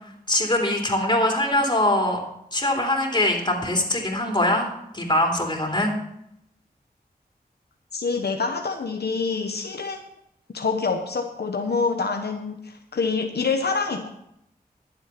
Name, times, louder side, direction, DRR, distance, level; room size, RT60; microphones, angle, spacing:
voice 1, 0.3-2.2 2.5-5.9, left 1 dB, 30° left, 1 dB, 3.5 m, -22 dB
voice 2, 7.9-10.0 10.5-14.1, left 4 dB, 85° left, 4 dB, 1.0 m, -26 dB
11.5 x 7.9 x 5.8 m, 0.77 s
cardioid pair, 45°, 17 cm